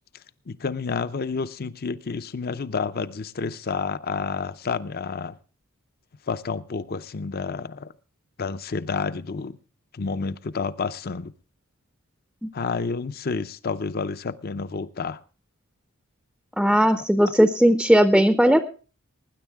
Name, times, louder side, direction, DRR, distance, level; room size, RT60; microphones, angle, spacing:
voice 1, 0.5-5.4 6.3-7.9 8.4-9.6 9.9-11.3 12.5-15.2 17.2-17.3, left 4 dB, 45° left, 0.6 m, -29 dB
voice 2, 16.6-18.6, equal, ahead, 0.6 m, -18 dB
20.0 x 9.9 x 3.5 m
head